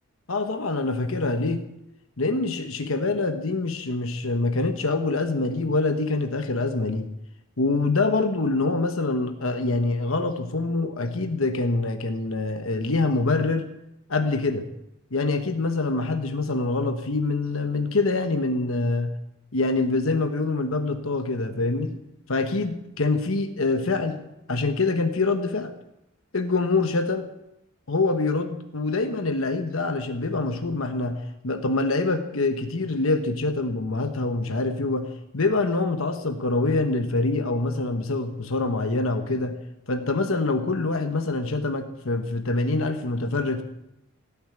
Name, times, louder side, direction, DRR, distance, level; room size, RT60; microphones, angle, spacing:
voice 1, 0.3-1.6 2.2-7.1 7.6-13.7 14.1-14.7 15.1-19.1 19.5-21.9 22.3-24.2 24.5-25.7 26.3-27.2 27.9-35.1 35.3-39.6 39.9-43.6, left 3 dB, 70° left, 7 dB, 1.2 m, -25 dB
17.5 x 7.3 x 8.9 m, 0.84 s
head